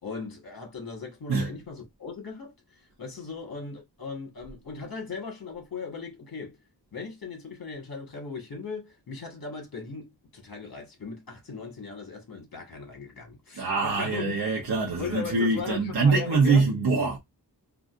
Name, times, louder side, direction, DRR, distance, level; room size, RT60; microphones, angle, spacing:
voice 1, 0.0-2.5 3.0-6.6 6.9-14.4 15.0-16.6, left 4 dB, 60° left, 1.5 m, -38 dB
voice 2, 13.6-17.2, right 4 dB, 70° right, 0.9 m, -24 dB
3.8 x 2.4 x 2.4 m
wide cardioid pair, 90°, 41 cm